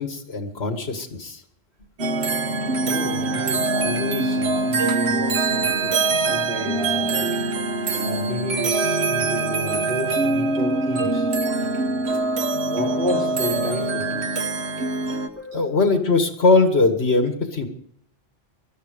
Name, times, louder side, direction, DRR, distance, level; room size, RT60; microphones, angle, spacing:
voice 1, 0.0-1.4 15.5-17.7, left 3 dB, 80° left, 7 dB, 2.1 m, -20 dB
sound 1, 2.0-15.3, right 3 dB, 90° right, 1.4 m, -23 dB
voice 2, 2.8-7.3 8.0-11.3 12.6-14.2 15.4-15.7, equal, 55° right, -6 dB, 4.4 m, -31 dB
18.5 x 12.5 x 5.2 m, 0.64 s
omnidirectional pair, 1.1 m